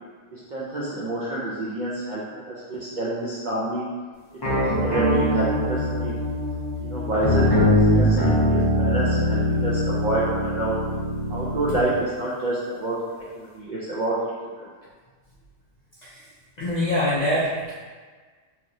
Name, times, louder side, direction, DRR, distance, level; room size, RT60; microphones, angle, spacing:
voice 1, 0.3-3.8 4.5-6.1 6.8-7.4 7.7-10.7 11.3-13.0 13.4-14.1, right 1 dB, 65° right, -7 dB, 0.4 m, -28 dB
sound 1, 4.4-11.9, equal, 20° left, 0.8 m, -22 dB
voice 2, 16.6-17.7, left 1 dB, 55° left, -9 dB, 0.5 m, -24 dB
2.9 x 2.9 x 2.6 m, 1.5 s
omnidirectional pair, 1.3 m